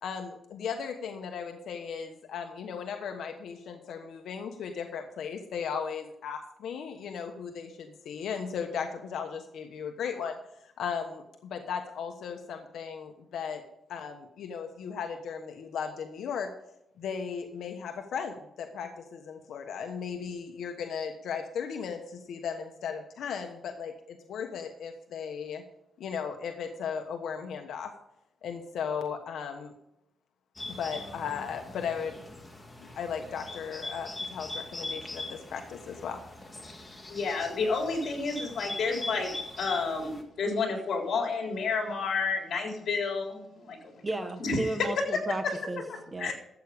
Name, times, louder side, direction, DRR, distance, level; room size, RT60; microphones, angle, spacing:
voice 1, 0.0-13.6 13.9-16.5 17.0-25.6 26.0-27.9 28.4-29.7 30.7-32.2 32.8-36.2, left 6 dB, 80° left, 5 dB, 1.2 m, -36 dB
Bird, 30.6-40.2, left 2 dB, 20° left, 2.0 m, -41 dB
voice 2, 37.1-43.8 44.4-44.7 45.4-45.6 45.9-46.3, left 4 dB, 65° left, 1 dB, 3.9 m, -30 dB
voice 3, 44.0-45.8 46.1-46.3, right 2 dB, 20° right, 8 dB, 1.3 m, -34 dB
13.0 x 8.3 x 5.2 m, 0.82 s
cardioid pair, 120°, 0 cm